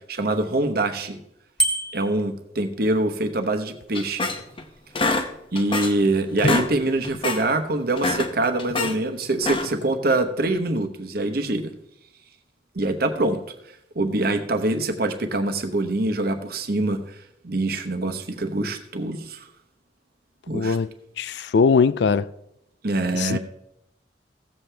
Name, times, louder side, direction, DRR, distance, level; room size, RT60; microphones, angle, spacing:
voice 1, 0.1-1.2 1.9-4.3 5.5-11.7 12.7-13.4 13.9-17.2 17.4-19.5 20.5-20.8 22.8-23.4, right 2 dB, 55° right, 1.0 m, -24 dB
Bicycle bell, 1.6-2.2, right 2 dB, 5° left, 1.6 m, -24 dB
sound 1, 3.9-4.6 5.0-6.1 6.3-6.7 7.0-7.4 7.9-9.0 9.4-9.9, left 2 dB, 30° left, 0.8 m, -25 dB
voice 2, 20.5-20.9 21.2-22.3 23.1-23.4, left 5 dB, 65° left, 0.4 m, -20 dB
15.5 x 7.5 x 3.4 m
head